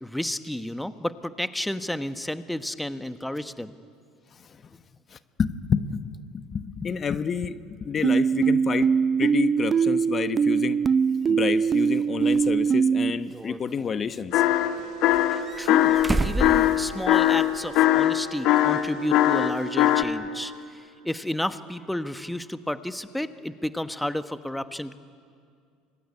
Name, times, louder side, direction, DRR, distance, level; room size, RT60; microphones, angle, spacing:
voice 1, 0.0-3.8 15.6-16.0 16.2-24.9, left 1 dB, 5° left, 11 dB, 1.1 m, -31 dB
voice 2, 5.1-6.1 6.3-8.9 9.2-10.8 11.3-14.4, left 6 dB, 35° left, 12 dB, 1.1 m, -28 dB
sound 1, 8.0-13.1, right 6 dB, 35° right, 0.6 m, -22 dB
sound 2, 12.3-12.4 13.3-14.2 15.1-17.5 17.8-17.9 19.4-19.5, right 2 dB, 15° right, 1.3 m, -30 dB
sound 3, 14.3-14.8 15.0-16.1 16.4-20.0, left 13 dB, 60° left, 1.9 m, -20 dB
27.0 x 23.0 x 9.6 m, 2.3 s
hypercardioid pair, 70°, 0 cm